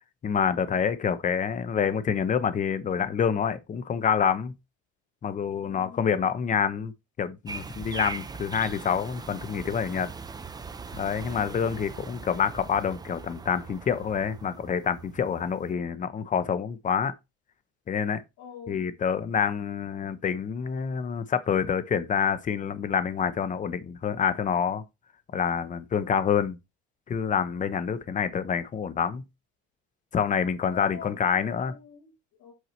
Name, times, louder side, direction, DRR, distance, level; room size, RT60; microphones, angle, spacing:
voice 1, 0.2-4.5 5.2-6.9 7.2-10.1 10.9-17.1 17.9-18.2 18.7-24.8 25.3-26.6 27.1-29.2 30.1-31.8, left 7 dB, 25° left, 0.8 m, -27 dB
voice 2, 5.6-6.3 18.4-18.9 30.6-32.5, left 8 dB, 70° left, 2.4 m, -46 dB
sound 1, 7.5-15.7, right 4 dB, 15° right, 0.6 m, -41 dB
8.1 x 4.7 x 4.3 m
cardioid pair, 135°, 29 cm